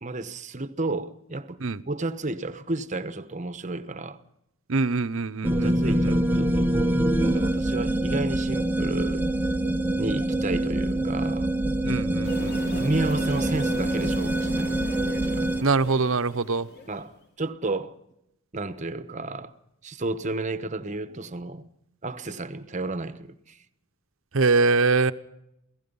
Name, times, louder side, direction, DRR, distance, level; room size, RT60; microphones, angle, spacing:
voice 1, 0.0-1.6 1.9-4.2 5.5-9.2 10.0-11.5 12.7-15.5 16.9-17.9 18.5-19.5 19.8-21.7 22.0-23.6, right 2 dB, 35° right, 1.1 m, -32 dB
voice 2, 4.7-6.1 11.8-12.6 15.6-16.7 24.3-25.1, right 4 dB, 65° right, 0.9 m, -24 dB
sound 1, 5.4-15.6, right 1 dB, 10° right, 0.8 m, -25 dB
sound 2, 12.2-17.1, left 1 dB, 45° left, 3.9 m, -40 dB
28.5 x 16.5 x 5.5 m
head